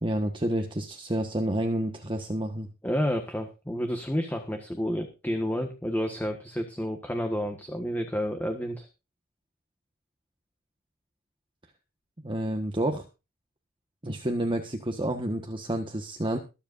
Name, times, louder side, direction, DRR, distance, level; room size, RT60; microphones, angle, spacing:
voice 1, 0.0-2.7 12.2-13.1 14.0-16.4, right 1 dB, 25° right, 4 dB, 1.4 m, -29 dB
voice 2, 2.8-8.9, equal, 10° left, 5 dB, 1.4 m, -30 dB
22.0 x 8.0 x 2.6 m, 0.29 s
head